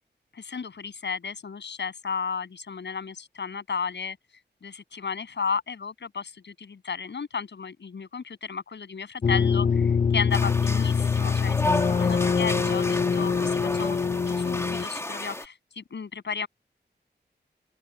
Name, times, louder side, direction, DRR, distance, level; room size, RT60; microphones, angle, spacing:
voice 1, 0.3-4.2 4.6-16.5, left 5 dB, 80° left, 7.7 m, -34 dB
sound 1, 9.2-14.8, left 6 dB, 40° left, 0.5 m, -24 dB
sound 2, 10.3-15.5, left 1 dB, 15° left, 2.3 m, -32 dB
open air
wide cardioid pair, 125°, 18 cm